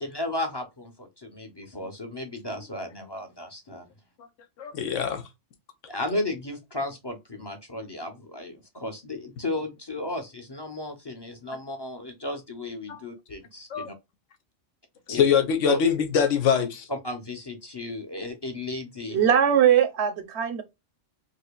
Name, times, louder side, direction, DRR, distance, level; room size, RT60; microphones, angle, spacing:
voice 1, 0.0-3.9 5.9-14.0 15.1-15.2 15.7-15.8 16.9-19.2, left 2 dB, 25° left, 0.7 m, -34 dB
voice 2, 4.6-5.2 12.9-13.0 13.7-13.9 15.1-16.9, left 7 dB, 85° left, 1.2 m, -23 dB
voice 3, 19.1-20.6, right 9 dB, 65° right, 1.0 m, -20 dB
4.6 x 2.7 x 2.2 m
omnidirectional pair, 1.2 m